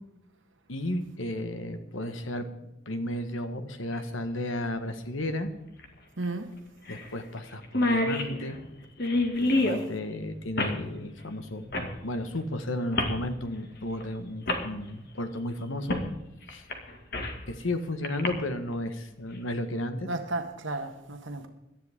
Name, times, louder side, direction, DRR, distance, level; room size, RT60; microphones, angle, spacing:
voice 1, 0.7-5.5 6.9-8.6 9.4-16.0 16.5-16.6 17.5-20.1, left 1 dB, 85° left, 1.5 m, -33 dB
sound 1, 3.9-4.0 5.8-5.9 6.2-6.3 6.9-7.1 7.4-7.5 7.6-9.8 10.6-10.8 11.7-11.9 12.9-13.2 14.0-14.1 14.5-14.6 15.9-16.1 16.5-17.4 18.0-18.3, left 2 dB, 55° left, 2.1 m, -27 dB
voice 2, 6.2-6.5 20.1-21.5, right 2 dB, 75° right, 1.3 m, -33 dB
18.0 x 12.5 x 3.7 m
head